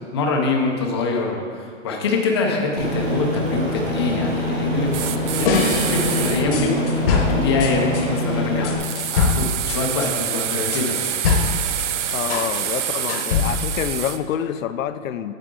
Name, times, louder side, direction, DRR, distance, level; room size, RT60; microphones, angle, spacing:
voice 1, 0.1-11.0, left 3 dB, 20° left, 1 dB, 0.5 m, -24 dB
Aircraft, 2.8-8.8, equal, 15° right, 0.8 m, -24 dB
sound 1, 4.9-6.4 8.8-14.2, right 10 dB, 65° right, 0.6 m, -27 dB
sound 2, 5.4-8.1 8.6-12.5 12.8-13.8, left 5 dB, 45° left, 1.0 m, -23 dB
voice 2, 12.1-15.3, left 10 dB, 80° left, 12 dB, 0.5 m, -27 dB
8.4 x 7.4 x 3.7 m, 2.1 s
hypercardioid pair, 165°, 39 cm